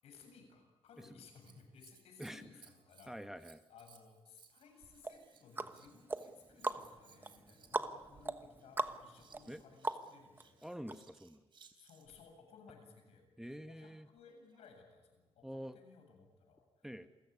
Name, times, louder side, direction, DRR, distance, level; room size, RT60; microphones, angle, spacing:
voice 1, 0.0-3.2 3.7-10.7 11.7-13.3 13.6-16.9, left 5 dB, 85° left, 4 dB, 7.7 m, -60 dB
Scissors, 0.9-12.2 14.2-14.8 15.5-15.6, right 6 dB, 55° right, 3.4 m, -65 dB
voice 2, 3.1-3.6 9.5-9.6 10.6-11.4 13.4-14.1 15.4-15.8 16.8-17.1, equal, 5° right, 8 dB, 1.0 m, -46 dB
sound 1, 5.0-10.4 10.9-11.0, right 3 dB, 20° right, 1.2 m, -41 dB
28.0 x 16.0 x 9.7 m, 1.2 s
cardioid pair, 110°, 10 cm